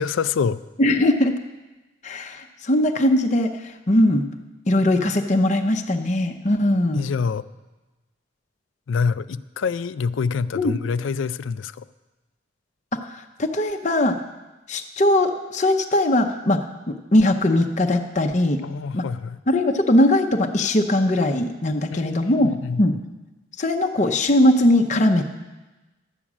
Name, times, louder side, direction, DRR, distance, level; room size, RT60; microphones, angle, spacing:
voice 1, 0.0-0.6 6.9-7.4 8.9-11.8 18.6-19.4 21.9-22.8, left 5 dB, 75° left, 16 dB, 0.4 m, -26 dB
voice 2, 0.8-1.3 2.0-4.2 4.7-7.0 10.5-10.7 12.9-13.0 13.4-14.2 14.7-18.6 18.9-19.1 19.5-22.9 23.6-25.3, left 1 dB, 35° left, 4 dB, 0.6 m, -20 dB
12.0 x 8.5 x 6.1 m, 1.1 s
head